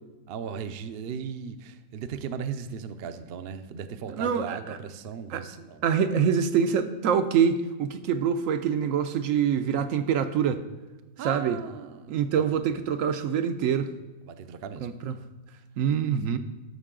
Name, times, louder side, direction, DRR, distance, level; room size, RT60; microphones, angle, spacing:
voice 1, 0.3-5.8 11.2-12.8 14.3-14.9, right 7 dB, 60° right, 9 dB, 0.6 m, -37 dB
voice 2, 4.1-4.8 5.3-5.4 5.8-10.6 11.2-11.6 12.1-13.9 14.8-15.2 15.8-16.4, right 7 dB, 75° right, 8 dB, 1.0 m, -25 dB
11.5 x 6.6 x 3.7 m, 1.2 s
omnidirectional pair, 1.4 m